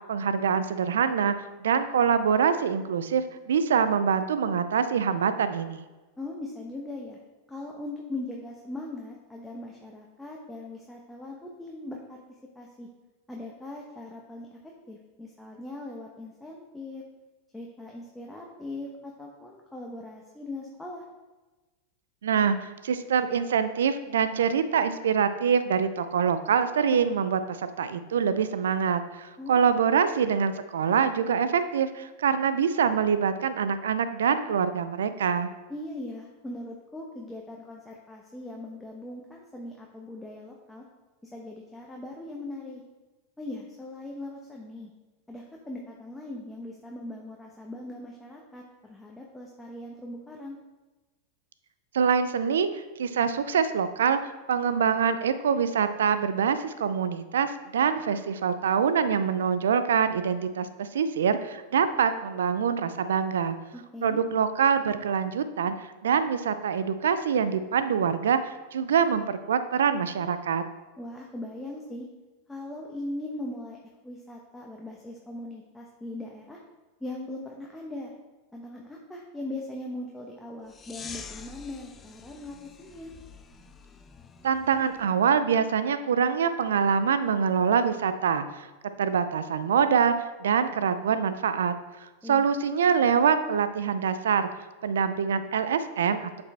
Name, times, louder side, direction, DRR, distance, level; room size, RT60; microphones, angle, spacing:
voice 1, 0.1-1.3 1.6-5.9 22.2-35.5 51.9-63.6 64.0-65.7 66.0-70.6 84.4-88.7 89.0-91.7 92.3-94.5 94.8-96.4, right 7 dB, 80° right, 12 dB, 0.5 m, -25 dB
voice 2, 6.2-7.2 7.5-12.2 12.5-12.9 13.3-14.6 14.9-17.0 17.5-21.0 29.4-29.6 35.7-40.8 41.2-42.8 43.4-44.9 45.3-50.6 63.7-64.2 71.0-72.1 72.5-73.8 74.0-76.6 77.0-78.1 78.5-83.1 92.2-92.5, left 2 dB, 5° left, -2 dB, 1.0 m, -40 dB
sound 1, 80.7-85.1, left 5 dB, 25° left, 0.6 m, -46 dB
8.1 x 5.3 x 3.4 m, 1.2 s
hypercardioid pair, 95°, 0 cm